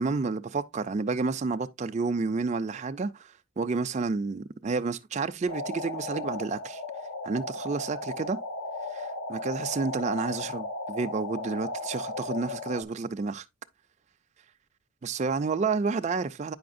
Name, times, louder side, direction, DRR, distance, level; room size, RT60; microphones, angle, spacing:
voice 1, 0.0-6.8 7.2-8.4 8.9-13.4 15.0-16.5, right 4 dB, 35° right, 0.3 m, -30 dB
sound 1, 5.5-12.8, left 2 dB, 80° left, 0.9 m, -36 dB
8.5 x 5.5 x 2.5 m
head